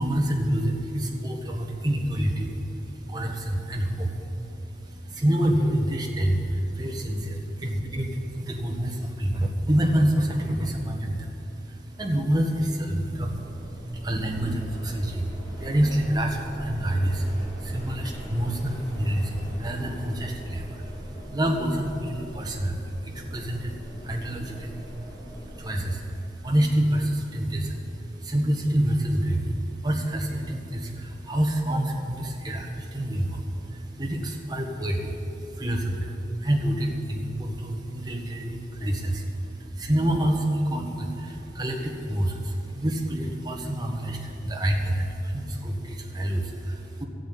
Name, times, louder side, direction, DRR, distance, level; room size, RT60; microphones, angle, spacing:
voice 1, 0.0-47.0, right 1 dB, 25° right, 1 dB, 1.4 m, -27 dB
sound 1, 13.1-25.8, equal, 15° left, 3.9 m, -41 dB
14.0 x 8.0 x 8.5 m, 2.9 s
head